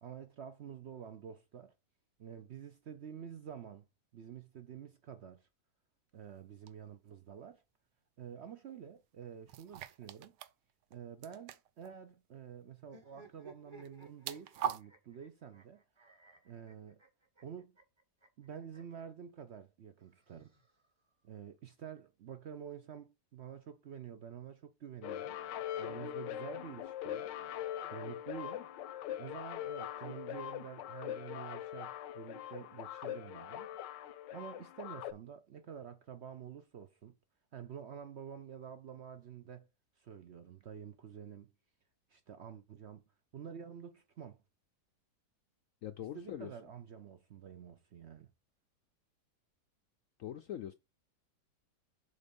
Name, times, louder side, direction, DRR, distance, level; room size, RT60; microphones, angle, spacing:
voice 1, 0.0-1.7 2.2-3.9 4.1-5.5 6.1-7.6 8.2-10.4 10.9-15.8 16.4-17.0 17.4-17.8 18.4-20.5 21.2-25.4 25.8-27.4 27.9-28.6 29.2-33.7 34.3-37.1 37.5-39.7 40.0-41.5 42.1-43.0 43.3-44.4 46.1-48.3, right 8 dB, 65° right, 0.6 m, -49 dB
sound 1, 6.7-6.8 9.5-10.5 10.8-10.9 11.2-11.9 13.8-14.8, right 10 dB, 80° right, 1.3 m, -40 dB
sound 2, 12.8-19.0 20.0-21.1, right 3 dB, 20° right, 1.1 m, -60 dB
sound 3, 25.0-35.1, left 11 dB, 85° left, 1.4 m, -42 dB
voice 2, 45.8-46.5 50.2-50.7, left 11 dB, 70° left, 0.8 m, -42 dB
6.9 x 4.0 x 5.2 m
omnidirectional pair, 1.9 m